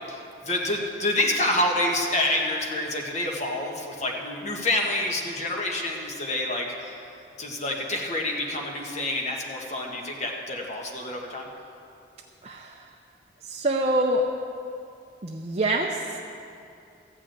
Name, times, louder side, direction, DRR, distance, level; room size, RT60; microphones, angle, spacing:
voice 1, 0.4-7.0 7.4-11.5, left 1 dB, 35° left, 0 dB, 1.5 m, -27 dB
voice 2, 12.4-12.9 13.4-14.2 15.2-16.2, right 1 dB, 35° right, 0 dB, 0.6 m, -26 dB
14.5 x 6.2 x 8.9 m, 2.6 s
head